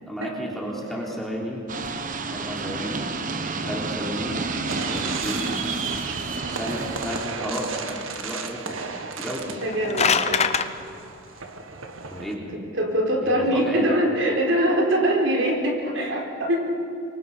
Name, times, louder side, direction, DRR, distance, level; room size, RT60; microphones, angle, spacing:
voice 1, 0.1-1.6 2.3-3.1 3.6-4.4 4.9-5.5 6.5-8.8 9.2-9.6 12.1-12.7 13.2-13.9, equal, ahead, -4 dB, 3.5 m, -32 dB
sound 1, 1.7-7.3, right 3 dB, 40° right, 1.0 m, -30 dB
sound 2, 4.7-12.4, right 4 dB, 80° right, 1.8 m, -34 dB
voice 2, 9.4-10.6 12.5-16.6, right 1 dB, 65° right, 0 dB, 4.5 m, -23 dB
sound 3, 9.5-10.7, left 6 dB, 30° left, 0.8 m, -22 dB
26.0 x 23.5 x 5.6 m, 2.5 s
head